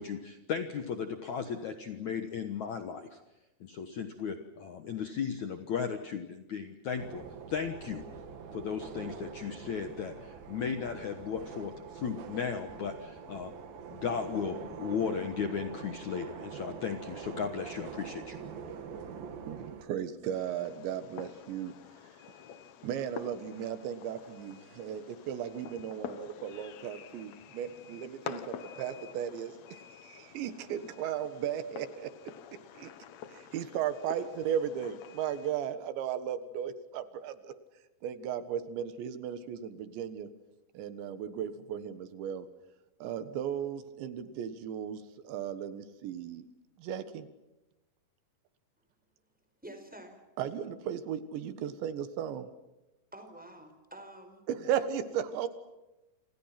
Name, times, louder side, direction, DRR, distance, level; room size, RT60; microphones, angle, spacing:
voice 1, 0.0-3.2 3.6-8.1 8.5-13.5 13.9-18.4, left 6 dB, 60° left, 7 dB, 2.0 m, -36 dB
sound 1, 7.0-19.9, right 6 dB, 60° right, 3.6 m, -44 dB
voice 2, 19.5-21.7 22.8-32.1 32.8-32.9 33.3-37.5 38.0-40.3 40.8-42.5 43.0-46.5 46.8-47.3 50.4-52.5 54.5-55.5, right 9 dB, 80° right, 11 dB, 3.8 m, -36 dB
Fireworks, 20.3-35.5, left 8 dB, 85° left, 1.5 m, -48 dB
voice 3, 49.6-50.2 53.1-54.4, right 1 dB, ahead, 6 dB, 4.1 m, -48 dB
29.0 x 27.5 x 6.0 m, 1.0 s
omnidirectional pair, 5.1 m